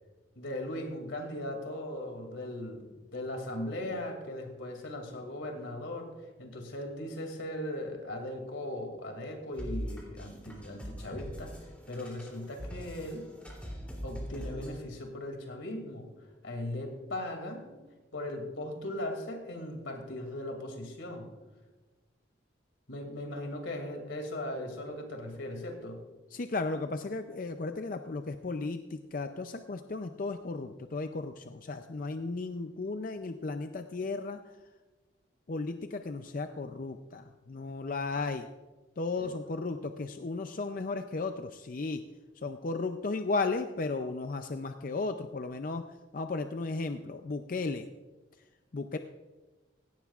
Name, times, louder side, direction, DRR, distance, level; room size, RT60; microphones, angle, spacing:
voice 1, 0.4-6.1 6.4-11.5 11.9-13.3 14.0-16.1 16.4-17.7 18.1-21.3 22.9-26.0 39.2-39.3, left 1 dB, 85° left, 4 dB, 2.5 m, -38 dB
sound 1, 9.5-14.7, equal, 5° left, 3.0 m, -42 dB
voice 2, 26.3-34.4 35.5-38.5 39.0-42.0 42.4-45.9 46.1-47.9 48.7-49.0, left 3 dB, 45° left, 7 dB, 0.5 m, -35 dB
17.0 x 16.5 x 2.4 m, 1.2 s
head